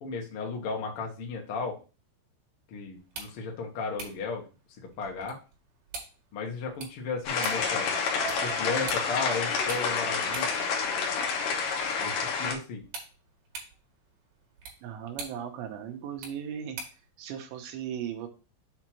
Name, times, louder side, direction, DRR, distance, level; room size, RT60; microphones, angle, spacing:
voice 1, 0.0-1.8 2.7-4.4 4.8-5.4 6.3-7.9 8.3-10.5 12.0-12.8, left 4 dB, 80° left, 1 dB, 1.2 m, -34 dB
sound 1, 3.0-17.1, right 4 dB, 60° right, 3.3 m, -46 dB
sound 2, 7.2-12.5, left 5 dB, 65° left, 2.5 m, -29 dB
voice 2, 14.8-16.8 17.2-18.3, right 9 dB, 85° right, 4 dB, 3.3 m, -37 dB
8.0 x 2.9 x 6.0 m, 0.33 s
omnidirectional pair, 5.1 m